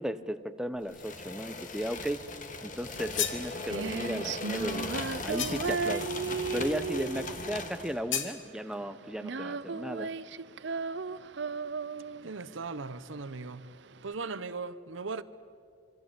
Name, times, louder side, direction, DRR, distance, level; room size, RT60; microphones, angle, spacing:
voice 1, 0.0-2.2 2.6-4.9 5.2-6.1 6.5-10.1, equal, 5° right, 0.8 m, -35 dB
sound 1, 0.9-8.0, left 3 dB, 40° left, 2.2 m, -39 dB
sound 2, 2.9-3.5 5.4-5.8 8.1-8.4, left 9 dB, 75° left, 2.2 m, -33 dB
Female singing, 3.2-14.1, right 4 dB, 65° right, 0.6 m, -36 dB
voice 2, 12.2-13.7 14.0-15.2, right 4 dB, 80° right, 1.0 m, -38 dB
26.0 x 25.5 x 8.8 m
head